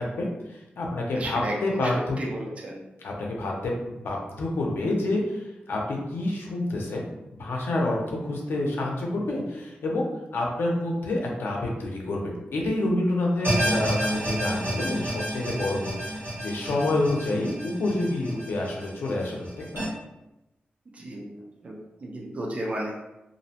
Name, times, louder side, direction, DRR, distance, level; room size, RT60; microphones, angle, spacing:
voice 1, 0.0-2.2 3.0-7.0 7.3-19.8, left 2 dB, 80° left, -1 dB, 0.5 m, -28 dB
voice 2, 1.2-2.8 20.9-21.4 21.6-23.0, right 1 dB, 35° right, -2 dB, 0.4 m, -33 dB
sound 1, 13.4-19.8, equal, 85° right, 1.3 m, -30 dB
2.6 x 2.0 x 2.7 m, 0.97 s
wide cardioid pair, 160°, 4 cm